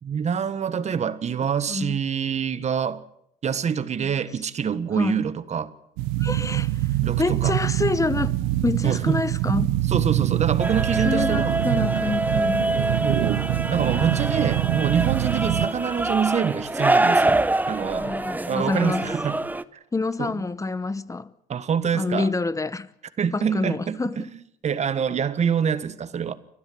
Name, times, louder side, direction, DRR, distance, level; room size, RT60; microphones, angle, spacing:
voice 1, 0.0-3.0 3.4-5.7 7.0-7.5 8.8-9.2 9.9-11.6 13.0-17.4 17.7-18.2 18.5-19.4 19.7-19.8 20.2-20.3 21.5-22.3 23.2-26.3, right 7 dB, 45° right, 1.5 m, -26 dB
voice 2, 1.7-2.0 5.0-5.2 6.2-6.9 7.2-9.7 11.0-12.7 17.9-19.1 19.9-21.3 21.9-22.9 23.3-24.2, left 3 dB, 20° left, 1.0 m, -27 dB
sound 1, 6.0-15.7, right 15 dB, 90° right, 1.0 m, -24 dB
sound 2, 10.6-19.6, right 2 dB, 10° right, 0.9 m, -25 dB
29.5 x 12.0 x 7.8 m
supercardioid pair, 70°, 16 cm